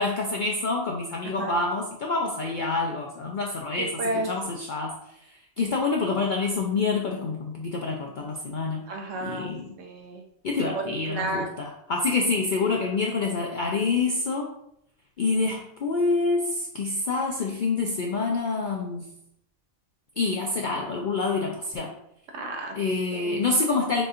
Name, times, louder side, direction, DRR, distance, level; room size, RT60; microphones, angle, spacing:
voice 1, 0.0-5.0 5.3-8.9 9.2-9.8 10.4-14.5 15.2-19.1 20.2-22.0 22.8-24.1, left 3 dB, 65° left, 0 dB, 0.4 m, -27 dB
voice 2, 3.8-4.3 8.9-9.5 9.8-10.2 10.6-11.5 22.3-22.8 23.1-23.4, right 2 dB, 70° right, 2 dB, 1.1 m, -32 dB
6.0 x 2.8 x 2.5 m, 0.76 s
omnidirectional pair, 1.4 m